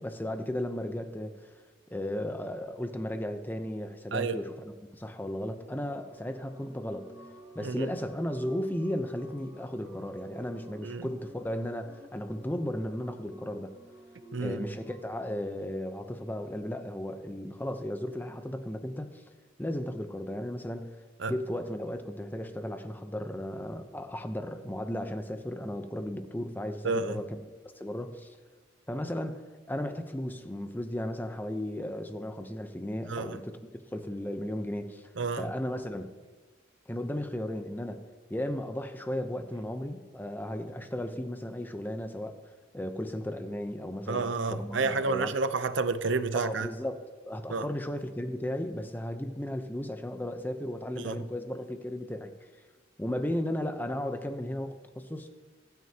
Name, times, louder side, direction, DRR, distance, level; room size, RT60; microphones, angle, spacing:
voice 1, 0.0-1.5 1.9-7.1 7.5-13.7 14.4-19.2 19.6-21.0 21.3-27.4 27.6-28.4 28.9-29.4 29.7-35.1 35.4-36.1 36.9-38.0 38.3-42.4 42.7-45.3 46.3-47.0 47.3-52.3 53.0-55.3, left 1 dB, 10° left, 0.7 m, -35 dB
voice 2, 4.1-4.4 7.6-7.9 10.8-11.1 14.3-14.7 21.2-21.3 26.8-27.2 33.1-33.4 35.2-35.4 44.1-46.7 47.5-47.7 51.0-51.3, right 4 dB, 70° right, 0.7 m, -30 dB
sound 1, 5.5-15.2, right 1 dB, 25° right, 1.5 m, -52 dB
24.5 x 9.5 x 2.9 m
head